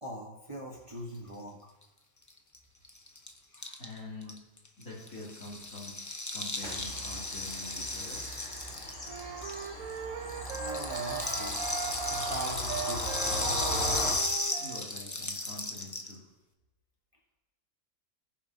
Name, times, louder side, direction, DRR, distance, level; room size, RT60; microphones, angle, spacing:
voice 1, 0.0-1.7 3.5-3.8 10.5-11.6 12.0-13.9, right 1 dB, 20° right, -3 dB, 1.3 m, -42 dB
Rattle (instrument), 2.3-2.4 2.5-2.6 2.8-10.0 10.3-16.1, left 2 dB, 20° left, 0.5 m, -35 dB
voice 2, 3.8-4.4 4.8-6.0 6.3-8.3 14.6-16.3, left 2 dB, 60° left, -5 dB, 3.5 m, -45 dB
Bird vocalization bird call bird song / Train, 6.6-14.1, equal, 45° left, 3.0 m, -38 dB
sound 1, 9.0-14.9, right 7 dB, 65° right, 1.1 m, -39 dB
20.0 x 7.3 x 2.8 m, 1.0 s
omnidirectional pair, 1.6 m